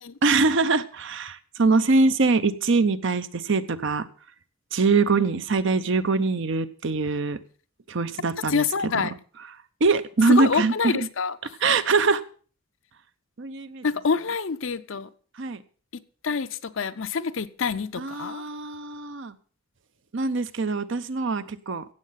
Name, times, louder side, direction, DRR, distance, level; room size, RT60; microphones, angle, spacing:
voice 1, 0.2-4.1 4.7-7.4 7.9-8.6 8.9-9.0 9.8-11.0 11.6-12.2 13.4-13.8 15.4-15.6 18.0-19.4 20.1-21.9, right 3 dB, 55° right, 13 dB, 0.7 m, -23 dB
voice 2, 8.5-9.1 10.3-11.4 13.8-15.1 15.9-18.4, left 5 dB, 60° left, 13 dB, 0.6 m, -27 dB
16.0 x 7.5 x 5.7 m, 0.42 s
head